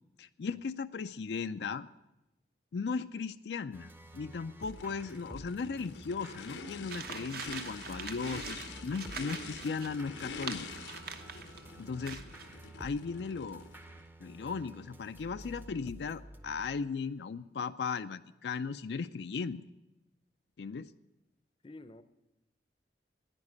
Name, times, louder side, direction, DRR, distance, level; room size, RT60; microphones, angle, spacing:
voice 1, 0.2-1.9 2.7-10.8 11.8-12.2 12.8-13.7 14.2-19.6 20.6-20.9, left 5 dB, 70° left, 10 dB, 0.4 m, -37 dB
sound 1, 3.7-17.0, right 1 dB, 10° right, 0.7 m, -52 dB
Race car auto racing / Idling / Accelerating revving vroom, 4.6-14.0, left 4 dB, 90° left, 0.9 m, -47 dB
sound 2, 6.9-11.7 12.0-12.5, right 6 dB, 55° right, 1.0 m, -44 dB
voice 2, 21.6-22.0, left 2 dB, 30° left, 12 dB, 0.6 m, -51 dB
10.5 x 9.8 x 9.6 m, 0.97 s
head